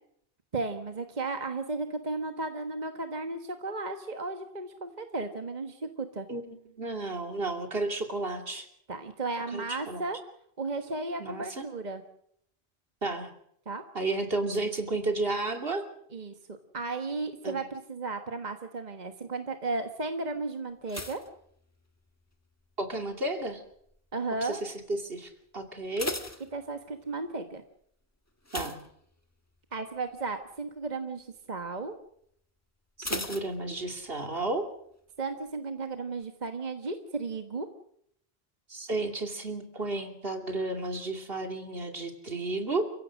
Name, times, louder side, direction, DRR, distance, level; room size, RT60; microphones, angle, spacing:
voice 1, 0.5-6.3 8.9-10.2 10.6-12.0 13.6-13.8 16.1-21.2 24.1-24.6 26.5-27.6 29.7-31.9 35.2-37.7, right 3 dB, 45° right, 6 dB, 1.5 m, -34 dB
voice 2, 6.3-8.7 9.5-10.0 11.2-11.7 13.0-13.3 13.9-15.8 17.4-17.6 22.8-23.6 24.4-24.7 25.0-26.2 28.5-28.8 33.0-34.7 38.7-42.8, right 2 dB, 65° right, 4 dB, 3.0 m, -32 dB
sound 1, 20.9-22.4 22.6-23.1 23.7-24.1 24.4-24.5 24.9-25.0 25.6-27.2 28.4-29.6 29.9-30.2 30.6-30.7 33.0-34.2 34.5-34.6, left 1 dB, 15° left, 1.4 m, -38 dB
29.5 x 16.0 x 6.4 m, 0.70 s
omnidirectional pair, 1.1 m